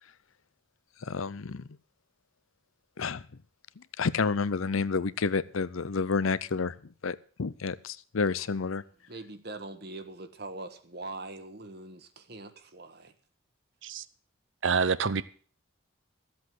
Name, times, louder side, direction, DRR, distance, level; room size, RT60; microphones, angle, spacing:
voice 1, 1.0-1.6 3.0-3.2 4.0-6.7 7.0-8.8, left 4 dB, 80° left, 0.6 m, -29 dB
voice 2, 9.1-13.1, right 2 dB, 50° right, 1.3 m, -42 dB
voice 3, 14.6-15.2, right 5 dB, 65° right, 0.7 m, -26 dB
14.0 x 8.0 x 7.8 m
head